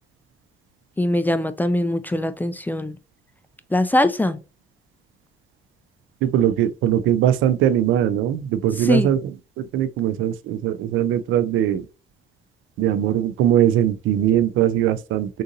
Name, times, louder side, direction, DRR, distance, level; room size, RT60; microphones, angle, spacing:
voice 1, 1.0-3.0 3.7-4.4 8.8-9.1, left 1 dB, 10° left, 0.3 m, -21 dB
voice 2, 6.2-9.2 9.6-11.9 12.8-15.4, right 11 dB, 80° right, 0.4 m, -20 dB
3.7 x 2.6 x 2.5 m
cardioid pair, 90°, 20 cm